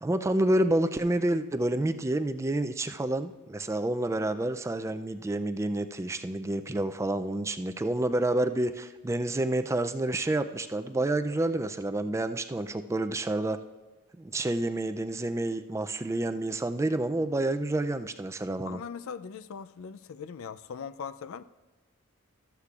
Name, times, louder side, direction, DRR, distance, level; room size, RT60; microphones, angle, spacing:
voice 1, 0.0-13.6 14.2-18.8, right 1 dB, 15° right, 0.3 m, -29 dB
voice 2, 18.6-21.4, left 6 dB, 65° left, 0.4 m, -40 dB
15.0 x 13.0 x 2.4 m
head